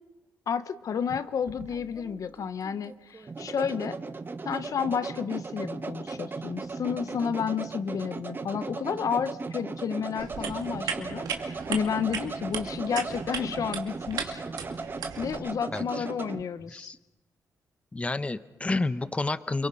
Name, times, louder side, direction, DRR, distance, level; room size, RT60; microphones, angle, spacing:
voice 1, 0.5-4.0 4.4-14.4 15.2-16.9, left 7 dB, 60° left, 13 dB, 1.0 m, -31 dB
sound 1, 1.1-16.4, right 4 dB, 35° right, 1.3 m, -37 dB
sound 2, 10.2-15.4, right 7 dB, 85° right, 2.5 m, -37 dB
voice 2, 15.7-16.0 16.7-17.0 17.9-19.7, left 2 dB, 20° left, 13 dB, 0.9 m, -30 dB
29.5 x 23.0 x 5.6 m, 1.0 s
cardioid pair, 90°, 6 cm